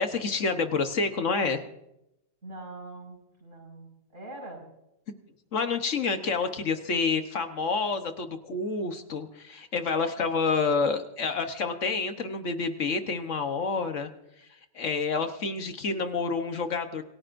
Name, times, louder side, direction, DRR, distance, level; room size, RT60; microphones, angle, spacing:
voice 1, 0.0-1.6 5.5-14.1 14.7-17.0, left 4 dB, 65° left, 7 dB, 1.5 m, -28 dB
voice 2, 2.4-4.6, right 2 dB, 65° right, -1 dB, 5.7 m, -43 dB
27.5 x 17.0 x 2.6 m, 0.86 s
omnidirectional pair, 1.4 m